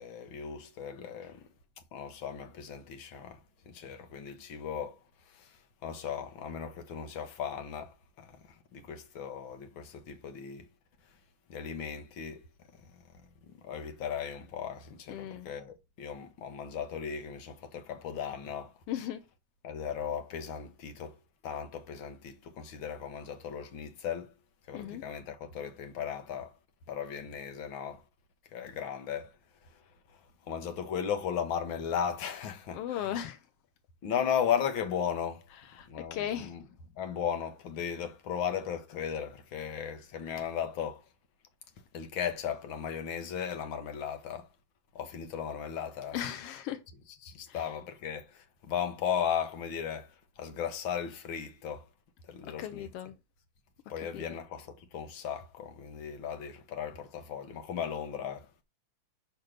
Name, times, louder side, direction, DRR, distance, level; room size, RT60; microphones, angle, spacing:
voice 1, 0.0-1.5 1.9-3.4 3.6-10.7 11.5-12.4 12.7-13.0 13.5-18.8 19.6-24.3 24.7-26.6 26.9-28.0 28.5-29.4 29.6-33.2 34.0-35.5 35.9-36.6 36.9-41.0 41.9-44.5 44.9-46.2 47.2-51.9 52.2-52.9 53.9-58.5, left 8 dB, 50° left, 1.6 m, -36 dB
voice 2, 15.1-15.5 18.9-19.2 24.7-25.0 32.7-33.4 35.8-36.6 46.1-46.8 47.5-47.6 52.6-53.2 54.0-54.2, left 11 dB, 85° left, 1.3 m, -37 dB
6.5 x 5.3 x 6.5 m
omnidirectional pair, 3.6 m